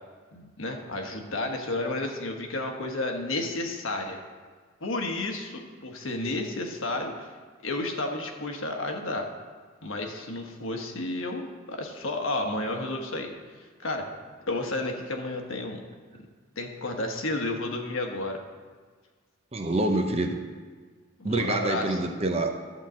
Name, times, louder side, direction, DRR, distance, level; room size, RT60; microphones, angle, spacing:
voice 1, 0.3-4.2 4.8-7.3 7.6-9.3 9.8-13.3 13.8-14.1 14.5-15.8 16.6-18.4 21.2-22.0, left 2 dB, 70° left, 3 dB, 1.2 m, -31 dB
voice 2, 19.5-20.4 21.2-22.5, right 2 dB, 30° right, 4 dB, 0.7 m, -26 dB
12.0 x 4.0 x 7.4 m, 1.5 s
head